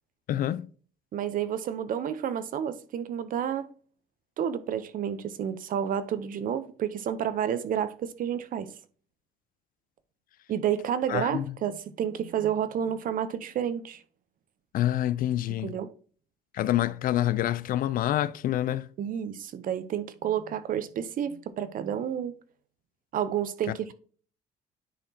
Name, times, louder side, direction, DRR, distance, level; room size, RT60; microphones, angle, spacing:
voice 1, 0.3-0.7 11.1-11.5 14.7-15.8 16.5-18.9, left 12 dB, 55° left, 0.4 m, -27 dB
voice 2, 1.1-3.7 4.4-8.7 10.5-14.0 15.6-15.9 19.0-22.3 23.1-23.9, right 9 dB, 55° right, 0.7 m, -30 dB
10.0 x 4.1 x 2.8 m
cardioid pair, 110°, 17 cm